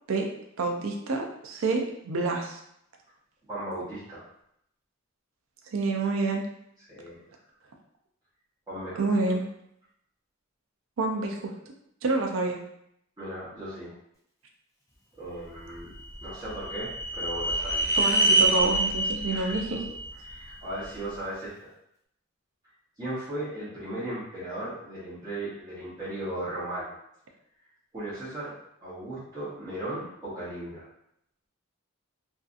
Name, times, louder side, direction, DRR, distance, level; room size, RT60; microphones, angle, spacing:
voice 1, 0.6-2.6 5.7-6.4 9.0-9.4 11.0-11.5 12.0-12.6 18.0-19.8, right 3 dB, 80° right, 2 dB, 0.5 m, -28 dB
voice 2, 3.5-4.2 6.9-7.2 8.7-9.4 13.2-13.9 15.2-15.9 16.2-18.2 19.3-19.6 20.2-21.7 23.0-26.9 27.9-28.5 28.8-30.9, right 1 dB, 20° right, -11 dB, 0.9 m, -36 dB
sound 1, 15.7-20.9, right 2 dB, 15° left, 0.5 m, -27 dB
2.6 x 2.4 x 2.4 m, 0.76 s
head